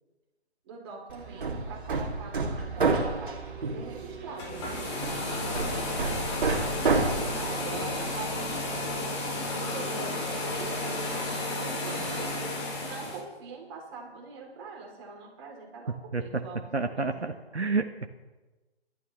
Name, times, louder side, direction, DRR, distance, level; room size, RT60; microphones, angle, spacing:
voice 1, 0.6-3.4 3.7-4.8 5.0-6.1 7.0-9.2 9.5-11.0 11.6-12.3 12.8-17.3, right 4 dB, 25° right, -1 dB, 3.2 m, -43 dB
Hammer, 1.1-8.9, right 3 dB, 50° right, 2.5 m, -31 dB
sound 1, 4.3-13.2, left 2 dB, 25° left, 2.8 m, -32 dB
sound 2, 10.4-14.3, right 4 dB, ahead, 0.5 m, -52 dB
voice 2, 15.9-18.1, right 3 dB, 90° right, 6 dB, 1.1 m, -30 dB
24.5 x 12.5 x 3.2 m, 1.2 s
figure-of-eight pair, 145°, 32 cm